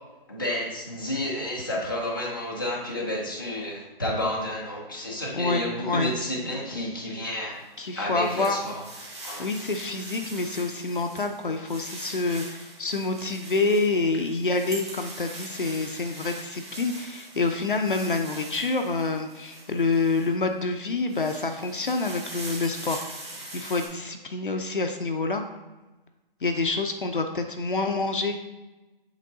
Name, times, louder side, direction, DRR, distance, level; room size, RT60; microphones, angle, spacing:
voice 1, 0.3-7.6 8.0-8.8 9.2-9.5, left 1 dB, 20° left, -3 dB, 0.8 m, -30 dB
voice 2, 5.3-6.1 7.8-8.6 9.4-23.0 23.5-25.4 26.4-28.3, left 3 dB, 60° left, 5 dB, 0.6 m, -27 dB
sound 1, 7.6-20.4 20.9-23.9, right 1 dB, 30° right, 1.2 m, -42 dB
8.2 x 3.6 x 4.0 m, 1.1 s
hypercardioid pair, 180°, 29 cm